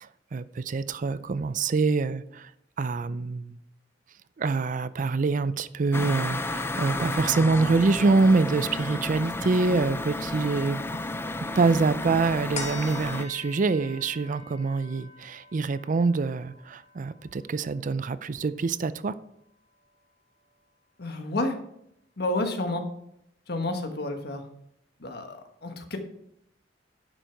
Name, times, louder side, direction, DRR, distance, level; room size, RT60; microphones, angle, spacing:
voice 1, 0.0-2.5 2.8-3.6 4.4-10.8 11.6-19.2, right 4 dB, 45° right, 15 dB, 0.4 m, -25 dB
sound 1, 5.9-13.3, left 2 dB, 15° left, 0.4 m, -32 dB
sound 2, 12.5-19.3 19.8-19.9, left 3 dB, 40° left, 1.3 m, -45 dB
voice 2, 21.0-21.6 22.2-22.8 23.5-24.4 25.0-26.0, left 2 dB, 60° left, 5 dB, 1.4 m, -30 dB
11.0 x 6.5 x 4.6 m, 0.74 s
head